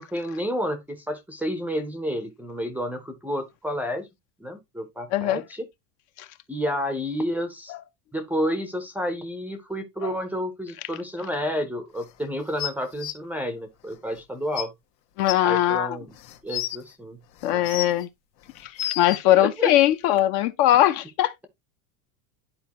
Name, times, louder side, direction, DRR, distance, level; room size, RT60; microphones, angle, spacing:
voice 1, 0.0-4.1 4.4-5.6 6.5-7.7 8.1-14.7 15.4-16.1 16.4-17.2 17.5-17.6 19.3-19.7, equal, 5° right, 0.5 m, -30 dB
voice 2, 5.1-5.4 15.2-16.0 17.4-18.1 18.6-21.3, left 13 dB, 45° left, 0.5 m, -20 dB
sound 1, 12.6-13.1 14.2-14.3 14.5-14.6 15.3-15.4 16.1-16.8 17.4-18.0 18.5-19.2 20.2-20.3, left 13 dB, 85° left, 1.4 m, -30 dB
10.5 x 4.3 x 2.8 m
supercardioid pair, 150°, 48 cm